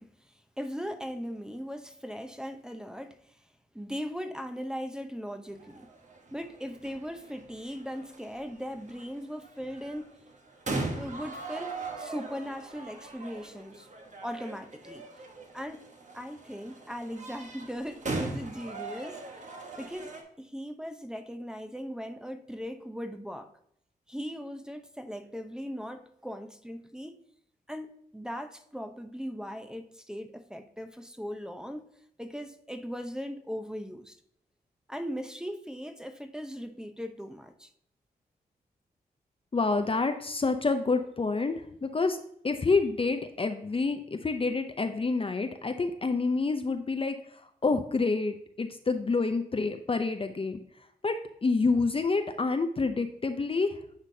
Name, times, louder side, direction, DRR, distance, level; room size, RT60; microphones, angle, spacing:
voice 1, 0.0-3.4 3.7-5.9 6.3-10.1 10.7-13.9 14.2-15.0 15.5-15.8 16.1-19.2 19.8-23.5 24.1-27.2 27.7-31.8 32.2-34.2 34.9-37.7, equal, 5° right, 0.8 m, -39 dB
sound 1, 5.5-20.2, right 3 dB, 50° right, 1.2 m, -40 dB
voice 2, 39.5-41.5 41.8-42.2 42.4-47.1 47.6-50.6 51.0-53.7, left 3 dB, 35° left, 0.6 m, -28 dB
9.7 x 3.8 x 2.8 m
cardioid pair, 50°, 16 cm